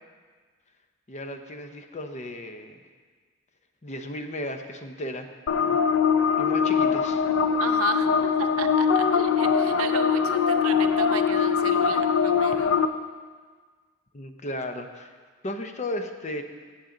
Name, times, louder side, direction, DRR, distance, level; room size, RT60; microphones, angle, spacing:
voice 1, 1.1-2.8 3.8-5.3 5.6-5.8 6.4-7.2 14.1-15.1 15.4-16.4, left 1 dB, 35° left, 6 dB, 0.7 m, -35 dB
sound 1, 5.5-12.9, left 6 dB, 70° left, 0.5 m, -22 dB
voice 2, 7.6-12.7, right 6 dB, 85° right, 7 dB, 0.7 m, -34 dB
16.0 x 7.1 x 3.9 m, 1.5 s
head